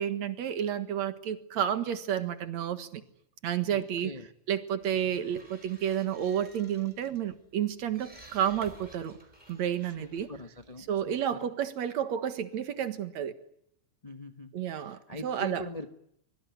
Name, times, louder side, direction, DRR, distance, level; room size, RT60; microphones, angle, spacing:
voice 1, 0.0-3.0 3.4-4.1 4.5-9.1 9.5-10.3 10.9-13.4 14.5-15.6, right 9 dB, 70° right, 11 dB, 2.8 m, -31 dB
voice 2, 3.7-4.3 9.8-11.5 14.0-14.5 14.8-15.9, left 1 dB, 35° left, 7 dB, 0.6 m, -43 dB
sound 1, 4.8-11.3, right 1 dB, 15° right, 4.6 m, -55 dB
25.5 x 23.0 x 9.5 m, 0.74 s
omnidirectional pair, 3.3 m